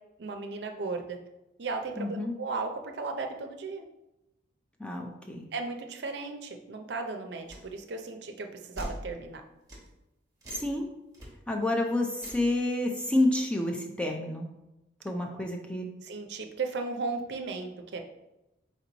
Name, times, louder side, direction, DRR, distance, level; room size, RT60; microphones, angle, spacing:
voice 1, 0.2-1.2 1.6-3.8 5.5-9.4 16.0-18.0, right 3 dB, 60° right, 4 dB, 0.5 m, -35 dB
voice 2, 2.0-2.3 4.8-5.5 10.5-10.9 11.5-14.5 15.0-15.9, left 1 dB, 5° left, 1 dB, 0.4 m, -29 dB
sound 1, 7.5-7.7 8.8-9.0 9.7-9.9 10.4-10.7 11.1-11.3 12.2-12.5, right 1 dB, 20° right, 1.1 m, -41 dB
4.4 x 3.0 x 3.9 m, 0.94 s
head